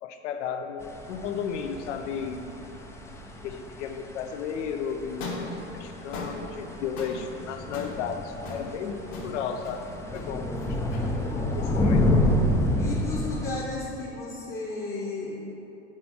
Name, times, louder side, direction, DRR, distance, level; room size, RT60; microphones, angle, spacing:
voice 1, 0.0-2.4 3.4-10.8 11.5-12.1, left 6 dB, 75° left, 6 dB, 0.6 m, -34 dB
sound 1, 0.8-13.5, left 1 dB, 10° left, 0.4 m, -29 dB
sound 2, 5.1-13.4, left 2 dB, 50° left, 1.2 m, -41 dB
voice 2, 11.3-11.9 12.8-15.4, left 3 dB, 25° left, -3 dB, 0.9 m, -34 dB
6.1 x 4.2 x 4.1 m, 2.9 s
hypercardioid pair, 80°, 37 cm